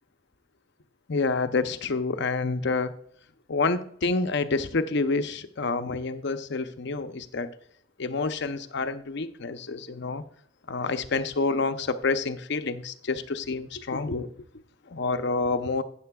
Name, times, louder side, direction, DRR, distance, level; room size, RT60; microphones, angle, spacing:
voice 1, 1.1-2.9 3.5-7.5 8.0-10.2 10.7-14.3 14.9-15.8, left 3 dB, 60° left, 10 dB, 0.7 m, -28 dB
12.5 x 9.2 x 2.3 m, 0.64 s
head